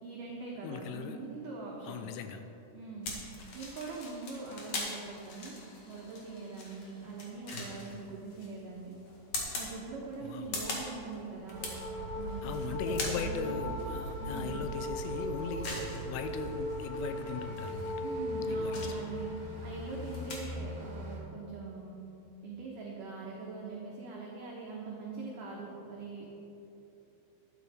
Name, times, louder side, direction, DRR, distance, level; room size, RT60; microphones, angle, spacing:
voice 1, 0.0-2.0 2.7-3.2 3.5-5.5 5.9-9.0 9.5-11.7 12.1-13.6 14.2-14.6 18.0-19.3 19.6-22.0 22.4-26.3, right 4 dB, 85° right, -3 dB, 1.8 m, -42 dB
voice 2, 0.6-1.2 1.9-2.4 12.4-15.7 16.1-17.9 18.5-18.7, left 6 dB, 80° left, 8 dB, 3.1 m, -38 dB
sound 1, 3.0-20.4, left 2 dB, 60° left, 1.7 m, -43 dB
sound 2, 11.5-21.2, equal, 50° right, 3.8 m, -37 dB
12.5 x 10.0 x 4.9 m, 2.9 s
omnidirectional pair, 5.6 m